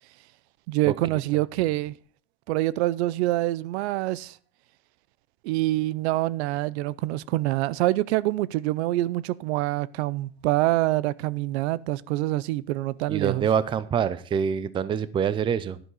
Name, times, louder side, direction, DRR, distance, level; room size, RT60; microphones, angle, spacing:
voice 1, 0.7-1.9 2.5-4.4 5.4-13.5, right 17 dB, 75° right, 0.6 m, -26 dB
voice 2, 13.1-15.8, right 7 dB, 15° right, 0.5 m, -25 dB
11.0 x 11.0 x 3.9 m
supercardioid pair, 145°, 33 cm